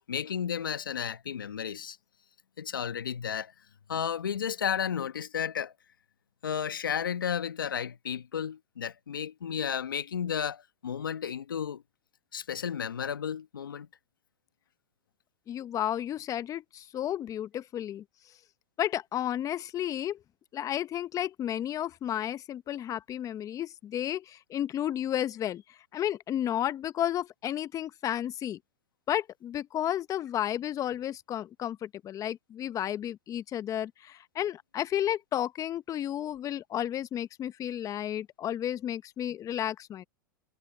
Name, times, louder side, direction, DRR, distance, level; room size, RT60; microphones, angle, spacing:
voice 1, 0.1-2.0 2.6-3.5 3.9-5.7 6.4-11.8 12.3-13.9, left 8 dB, 90° left, 1.4 m, -33 dB
voice 2, 15.5-18.0 18.8-20.2 20.5-28.6 29.1-40.0, left 11 dB, 30° left, 1.1 m, -32 dB
hypercardioid pair, 105°, 11 cm